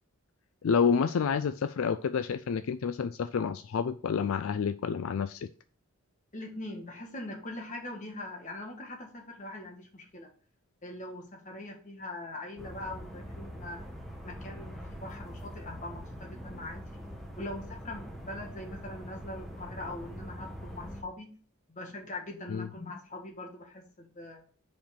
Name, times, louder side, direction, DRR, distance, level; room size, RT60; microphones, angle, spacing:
voice 1, 0.6-5.5 22.5-22.7, left 6 dB, 70° left, 0.4 m, -29 dB
voice 2, 6.3-10.3 10.8-13.8 14.2-17.0 17.4-21.3 21.7-24.4, left 2 dB, 35° left, 1.5 m, -42 dB
sound 1, 12.6-21.0, equal, ahead, 1.1 m, -43 dB
5.2 x 5.1 x 5.9 m
head